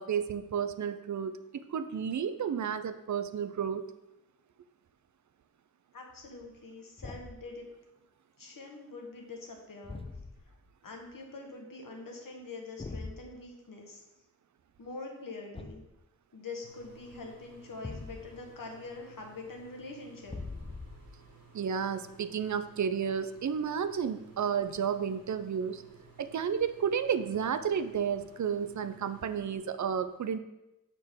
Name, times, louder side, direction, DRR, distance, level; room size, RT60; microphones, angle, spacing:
voice 1, 0.0-3.9 21.5-25.8 26.2-30.4, right 7 dB, 60° right, 11 dB, 0.5 m, -32 dB
voice 2, 5.9-7.7 8.4-10.0 10.8-14.0 14.8-15.8 16.3-20.4, left 3 dB, 75° left, 1 dB, 1.3 m, -44 dB
Thump thud, 7.0-7.5 9.8-10.6 12.8-13.2 15.5-16.0 17.8-18.5 20.3-21.2, left 3 dB, 15° left, 0.4 m, -42 dB
sound 1, 16.6-29.6, right 4 dB, 85° right, 1.7 m, -57 dB
6.5 x 6.2 x 3.6 m, 0.94 s
wide cardioid pair, 115°, 34 cm